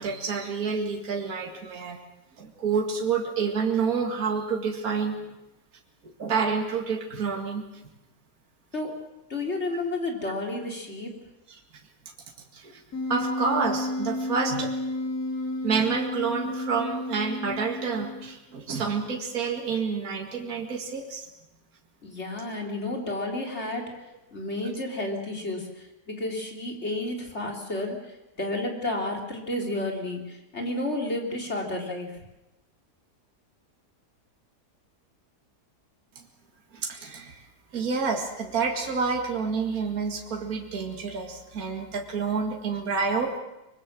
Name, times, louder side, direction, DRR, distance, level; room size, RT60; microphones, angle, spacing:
voice 1, 0.0-2.0 2.4-5.3 6.0-7.7 12.5-12.8 13.1-14.7 15.6-21.3 36.7-37.4 37.7-43.4, right 5 dB, 60° right, 2 dB, 2.4 m, -28 dB
voice 2, 9.3-11.1 22.0-23.9 24.3-28.0 28.4-32.2, left 2 dB, 40° left, 2 dB, 3.8 m, -31 dB
Wind instrument woodwind instrument, 12.9-18.3, left 1 dB, 65° left, 5.6 m, -32 dB
24.5 x 21.5 x 7.5 m, 0.93 s
omnidirectional pair, 1.7 m